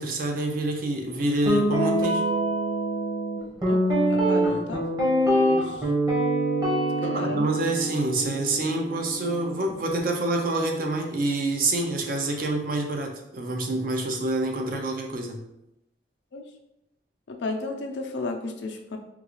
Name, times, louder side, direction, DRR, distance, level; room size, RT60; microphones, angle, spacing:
voice 1, 0.0-2.2 7.0-15.4, right 2 dB, 50° right, 3 dB, 0.5 m, -27 dB
Guitar, 1.5-9.6, right 1 dB, 20° right, 0.8 m, -25 dB
voice 2, 4.1-5.0 5.3-5.9 7.0-7.5 16.3-16.5 17.3-19.0, left 3 dB, 85° left, 3 dB, 0.5 m, -33 dB
3.7 x 2.3 x 3.0 m, 0.88 s
head